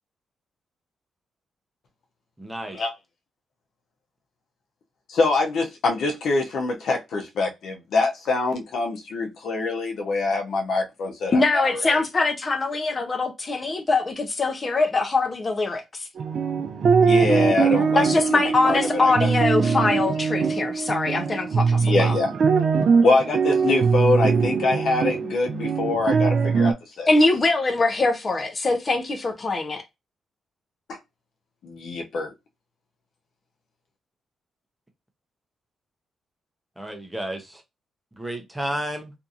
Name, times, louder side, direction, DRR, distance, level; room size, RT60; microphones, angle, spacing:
voice 1, 2.4-2.8 36.8-37.6 38.2-39.1, right 1 dB, 10° right, 0.7 m, -31 dB
voice 2, 5.1-12.0 17.0-18.1 18.3-19.3 21.8-22.3 23.0-27.1 30.9-31.0 31.6-32.3, left 3 dB, 70° left, 0.7 m, -24 dB
voice 3, 11.3-16.1 18.0-22.2 27.1-29.8, left 3 dB, 30° left, 0.6 m, -23 dB
sound 1, 16.2-26.7, right 5 dB, 55° right, 0.3 m, -21 dB
2.7 x 2.5 x 2.4 m
cardioid pair, 110°, 0 cm